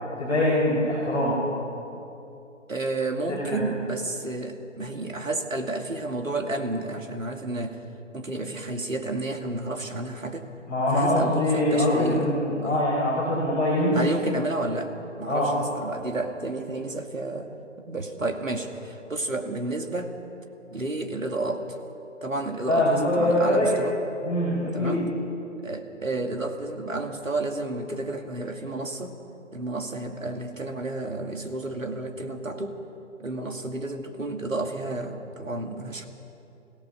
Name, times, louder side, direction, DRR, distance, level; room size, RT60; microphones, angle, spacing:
voice 1, 0.2-1.4 3.3-3.6 10.7-14.0 15.2-15.5 22.7-23.7 24.2-25.0, left 1 dB, ahead, -13 dB, 0.6 m, -23 dB
voice 2, 2.7-7.8 8.1-10.5 10.9-12.3 12.6-12.8 13.9-14.9 15.2-17.5 17.9-20.1 20.7-21.8 22.2-24.0 24.7-25.0 25.6-29.2 29.5-32.8 33.2-36.1, right 2 dB, 80° right, 5 dB, 2.4 m, -31 dB
23.0 x 16.5 x 7.0 m, 2.9 s
figure-of-eight pair, 150°, 39 cm